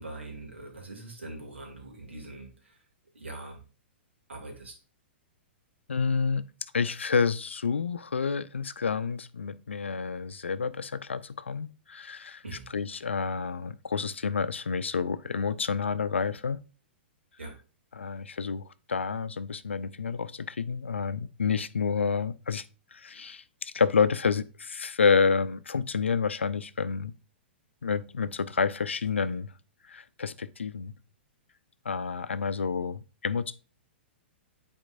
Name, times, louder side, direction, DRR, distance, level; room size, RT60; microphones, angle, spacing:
voice 1, 0.0-2.8 3.1-3.6 4.3-4.7 12.4-12.7 17.4-17.5, right 2 dB, 85° right, 2.5 m, -42 dB
voice 2, 5.9-6.4 6.7-12.4 12.7-16.6 17.9-22.6 22.9-27.1 27.8-29.5 29.9-30.9 31.8-33.5, left 5 dB, 85° left, 0.5 m, -29 dB
8.8 x 4.4 x 2.5 m
hypercardioid pair, 110°, 6 cm